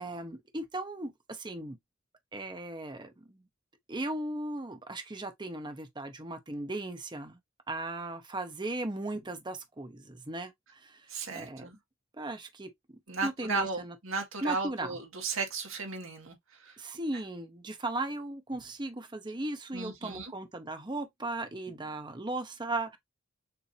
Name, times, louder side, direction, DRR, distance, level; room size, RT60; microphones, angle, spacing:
voice 1, 0.0-1.8 2.3-3.3 3.9-7.4 7.7-11.0 11.3-11.7 12.2-13.9 14.4-15.0 16.8-23.0, right 2 dB, 20° right, 0.8 m, -37 dB
voice 2, 11.1-11.8 13.1-16.3 16.6-16.8 19.7-20.3, right 4 dB, 80° right, 1.9 m, -35 dB
6.8 x 2.7 x 2.7 m
head